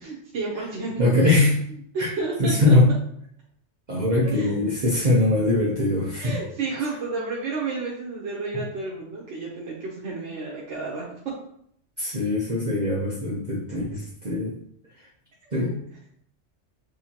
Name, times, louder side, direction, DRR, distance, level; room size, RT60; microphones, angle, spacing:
voice 1, 0.0-1.0 1.9-2.8 4.2-4.6 6.2-11.1 15.4-15.7, right 3 dB, 85° right, -4 dB, 1.2 m, -31 dB
voice 2, 1.0-1.5 2.0-2.1 2.4-2.9 3.9-6.4 12.0-14.5 15.0-15.1 15.5-15.7, left 2 dB, 45° right, -5 dB, 0.9 m, -21 dB
6.5 x 2.8 x 2.9 m, 0.68 s
omnidirectional pair, 1.2 m